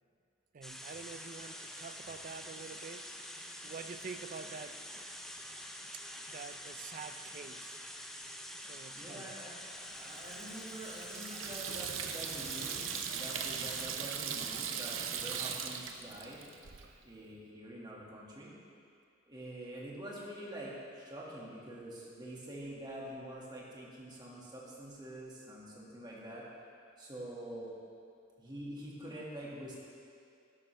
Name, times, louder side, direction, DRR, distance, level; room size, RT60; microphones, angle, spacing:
voice 1, 0.5-3.1 3.6-4.8 5.9-7.8 8.6-9.4 16.8-17.0, right 5 dB, 45° right, 10 dB, 0.4 m, -47 dB
sound 1, 0.6-13.9, equal, ahead, 0.6 m, -46 dB
voice 2, 8.9-9.6 9.9-16.4 17.0-18.5 19.3-26.4 27.0-27.7 28.4-29.8, right 1 dB, 20° right, -5 dB, 2.0 m, -46 dB
Water tap faucet / Sink (filling or washing), 10.1-16.9, right 7 dB, 80° right, 0.7 m, -39 dB
12.5 x 11.5 x 3.4 m, 2.4 s
head